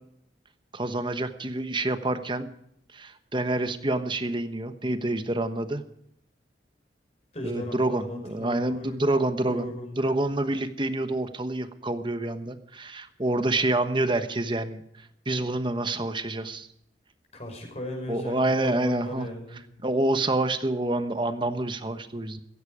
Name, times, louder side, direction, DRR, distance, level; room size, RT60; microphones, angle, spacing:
voice 1, 0.7-2.5 2.9-5.8 7.4-9.7 10.0-14.8 15.3-16.7 18.1-19.3 19.8-22.4, right 2 dB, 25° right, 10 dB, 1.1 m, -27 dB
voice 2, 7.3-9.0 9.5-10.1 17.3-19.6, left 1 dB, 35° left, 2 dB, 5.6 m, -37 dB
16.0 x 15.5 x 4.9 m, 0.75 s
head